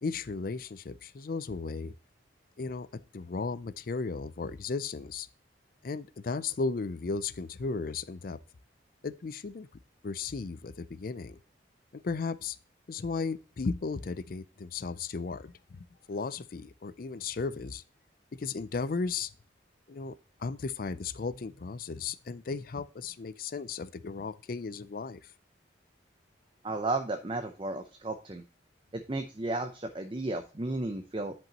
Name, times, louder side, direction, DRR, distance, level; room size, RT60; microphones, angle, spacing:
voice 1, 0.0-1.9 2.6-2.9 3.1-5.3 5.8-8.4 9.0-9.7 10.0-11.4 11.9-12.6 12.9-17.8 18.4-19.3 19.9-25.2, left 4 dB, 50° left, 0.4 m, -35 dB
voice 2, 26.6-28.4 28.9-31.3, right 2 dB, 25° right, 0.5 m, -33 dB
10.5 x 5.3 x 2.9 m
head